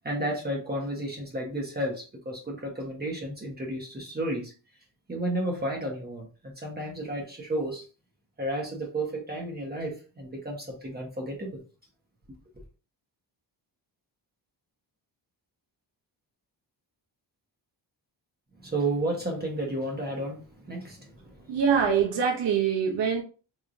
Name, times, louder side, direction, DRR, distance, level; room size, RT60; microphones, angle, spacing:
voice 1, 0.0-4.5 5.1-7.8 8.4-11.6 18.6-21.5, right 1 dB, 20° right, 1.1 m, -32 dB
voice 2, 21.5-23.2, right 7 dB, 75° right, 1.0 m, -24 dB
3.7 x 3.2 x 2.5 m
wide cardioid pair, 125°, 43 cm